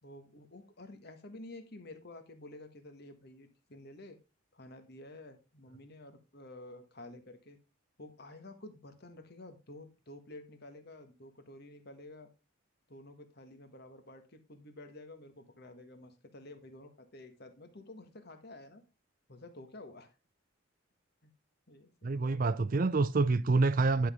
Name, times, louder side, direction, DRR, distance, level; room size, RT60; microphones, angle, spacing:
voice 1, 0.0-4.2 4.5-7.6 8.0-12.3 12.9-18.8 19.3-20.1 21.2-21.3 21.7-22.5, left 2 dB, 50° left, 1.5 m, -51 dB
voice 2, 22.0-24.1, right 3 dB, 45° right, 0.5 m, -27 dB
11.0 x 5.8 x 3.6 m
head